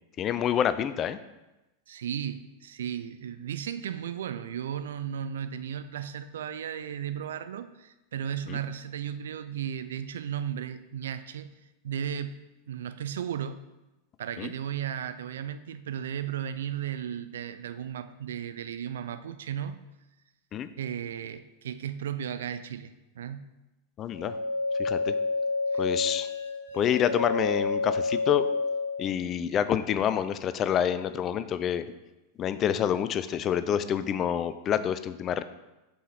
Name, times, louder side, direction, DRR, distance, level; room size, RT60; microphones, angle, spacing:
voice 1, 0.2-1.2 8.5-8.6 14.4-14.5 20.5-20.7 24.0-24.4 24.8-25.1 25.8-26.3 26.7-28.5 29.0-31.8 32.4-35.4, left 9 dB, 35° left, 12 dB, 0.4 m, -27 dB
voice 2, 1.9-11.5 11.8-13.6 14.2-19.8 20.8-23.5 25.7-25.9, right 9 dB, 70° right, 11 dB, 0.4 m, -35 dB
sound 1, 24.1-29.0, left 3 dB, 75° left, 1.2 m, -29 dB
5.4 x 4.9 x 4.2 m, 1.0 s
hypercardioid pair, 95°, 0 cm